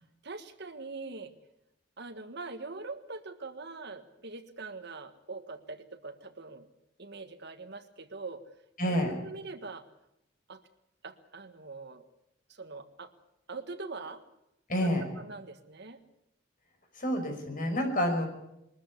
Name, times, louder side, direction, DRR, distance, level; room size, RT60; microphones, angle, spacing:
voice 1, 0.2-1.3 2.0-6.7 7.0-8.4 8.8-9.8 10.5-10.6 11.0-12.0 12.5-13.1 13.5-14.2 14.8-16.0, right 3 dB, 60° right, 9 dB, 1.6 m, -43 dB
voice 2, 8.8-9.2 14.7-15.1 17.0-18.3, equal, 45° left, 4 dB, 5.7 m, -28 dB
22.5 x 13.5 x 9.8 m, 0.84 s
head